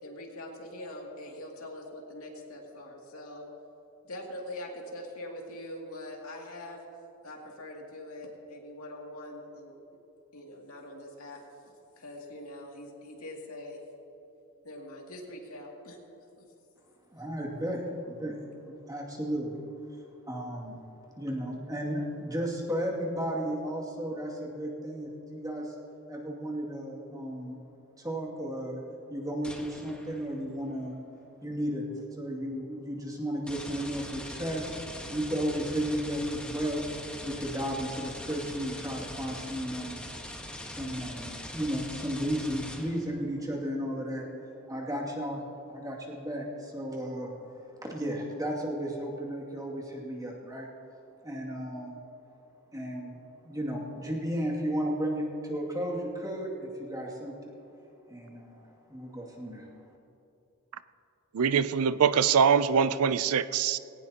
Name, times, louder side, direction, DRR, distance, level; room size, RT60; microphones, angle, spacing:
voice 1, 0.0-3.5 4.0-6.8 7.2-9.7 10.3-11.4 12.0-13.8 14.6-16.0 16.4-16.5, left 1 dB, 75° left, -1 dB, 2.5 m, -43 dB
voice 2, 17.1-19.6 19.9-20.0 20.3-20.8 21.2-25.7 26.1-27.6 28.0-28.8 29.1-31.0 31.4-34.7 35.1-36.8 37.2-40.1 40.6-44.3 44.7-50.7 51.2-52.0 52.7-53.2 53.4-57.5 58.1-59.7, equal, 15° right, -3 dB, 2.3 m, -34 dB
sound 1, 29.4-30.4 33.5-43.2, left 1 dB, 5° left, 1.2 m, -42 dB
voice 3, 61.3-63.8, right 7 dB, 85° right, 14 dB, 0.5 m, -23 dB
19.5 x 18.0 x 2.9 m, 2.8 s
head